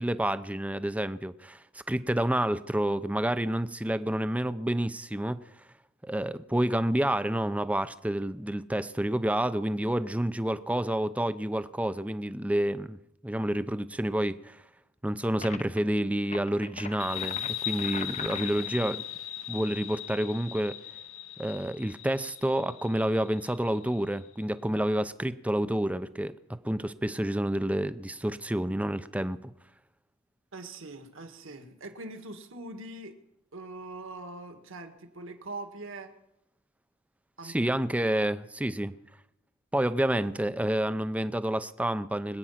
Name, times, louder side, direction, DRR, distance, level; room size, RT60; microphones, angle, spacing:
voice 1, 0.0-5.6 6.0-13.0 13.2-14.6 15.0-19.0 19.5-20.8 21.4-26.3 26.6-29.5 37.4-38.9 39.7-42.4, right 1 dB, 5° right, 0.5 m, -29 dB
sound 1, 15.4-15.8 16.2-18.8, left 5 dB, 35° left, 0.7 m, -41 dB
sound 2, 17.0-24.2, left 12 dB, 70° left, 0.9 m, -38 dB
voice 2, 30.5-33.1 33.5-36.1 37.4-37.6 38.0-38.1, right 2 dB, 65° right, 1.8 m, -42 dB
24.5 x 8.9 x 5.8 m
head